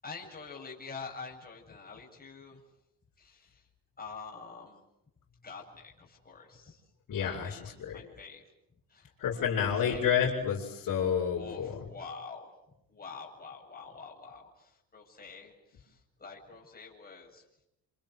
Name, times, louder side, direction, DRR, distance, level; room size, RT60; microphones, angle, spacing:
voice 1, 0.0-2.6 3.2-3.7 4.0-4.8 5.4-6.8 7.2-8.4 8.9-10.0 11.4-12.6 12.9-17.4, left 4 dB, 25° left, -1 dB, 7.8 m, -47 dB
voice 2, 7.1-8.0 9.2-11.8, left 7 dB, 60° left, -5 dB, 6.8 m, -30 dB
27.0 x 26.5 x 7.9 m, 0.84 s
supercardioid pair, 80°, 36 cm